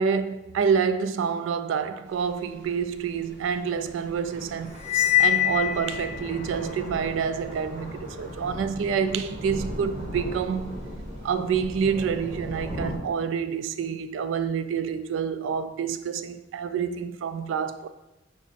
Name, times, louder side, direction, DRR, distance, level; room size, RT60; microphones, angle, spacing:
voice 1, 0.0-4.8 5.2-10.8 11.2-17.9, right 6 dB, 90° right, 0.3 m, -27 dB
sound 1, 2.1-13.0, equal, 40° right, 0.9 m, -38 dB
Cymbal, 4.8-6.3, left 12 dB, 35° left, 0.5 m, -23 dB
6.1 x 2.0 x 4.1 m
head